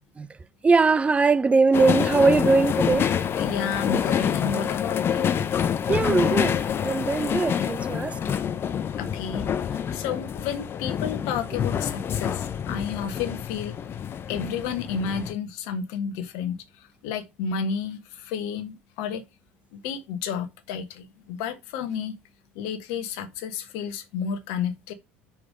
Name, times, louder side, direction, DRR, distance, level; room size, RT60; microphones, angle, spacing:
voice 1, 0.6-3.1 5.9-8.4, right 4 dB, 20° right, 0.5 m, -21 dB
sound 1, 1.7-15.3, left 8 dB, 35° left, 0.7 m, -27 dB
voice 2, 3.4-5.4 9.0-13.7 14.3-16.6 17.0-19.2 19.7-22.1 22.5-24.9, left 6 dB, 60° left, 1.4 m, -31 dB
5.3 x 4.7 x 5.3 m
figure-of-eight pair, 65°, 6 cm